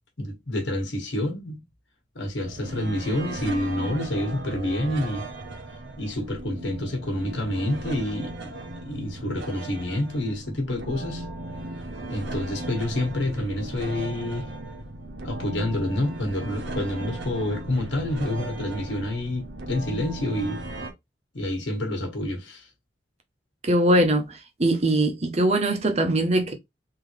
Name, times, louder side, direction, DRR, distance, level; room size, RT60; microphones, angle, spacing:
voice 1, 0.2-1.6 2.1-5.3 6.0-11.2 12.1-14.5 15.2-20.6 21.3-22.7, left 1 dB, 85° left, 1.5 m, -28 dB
sound 1, 2.4-20.9, right 1 dB, 80° right, 0.9 m, -36 dB
voice 2, 23.6-24.3 24.6-26.5, right 1 dB, 35° right, 0.7 m, -21 dB
3.8 x 2.8 x 3.2 m
head